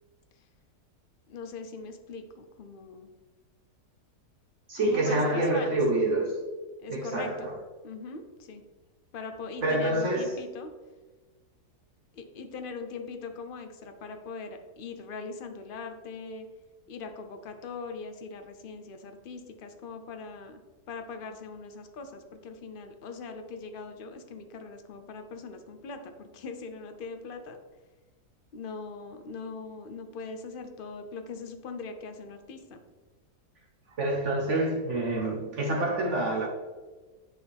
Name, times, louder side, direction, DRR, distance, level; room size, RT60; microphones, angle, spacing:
voice 1, 1.3-3.1 4.8-5.8 6.8-7.5 7.8-8.6 9.1-10.7 12.1-16.5 16.9-20.6 20.9-27.6 28.5-32.8, left 4 dB, 55° left, 0.6 m, -41 dB
voice 2, 4.7-6.4 6.9-7.6 9.6-10.4 34.0-36.5, right 2 dB, 55° right, 1.1 m, -27 dB
9.4 x 4.5 x 3.4 m
omnidirectional pair, 1.7 m